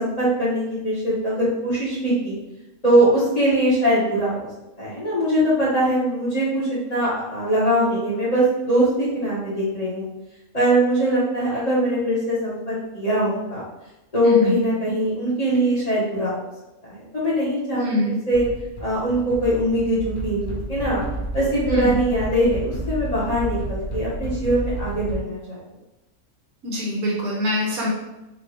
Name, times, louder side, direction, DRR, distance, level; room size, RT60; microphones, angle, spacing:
voice 1, 0.0-2.3 2.8-4.5 4.8-10.1 10.5-13.6 14.1-16.3 16.9-18.4 18.8-21.0 21.3-25.6, right 1 dB, 25° left, -9 dB, 1.4 m, -22 dB
voice 2, 14.2-14.6 17.7-18.2 21.7-22.0 26.6-27.9, left 1 dB, 85° right, -3 dB, 1.5 m, -24 dB
sound 1, 18.3-25.2, right 1 dB, 90° left, 1.2 m, -31 dB
4.2 x 2.7 x 3.0 m, 0.97 s
omnidirectional pair, 1.5 m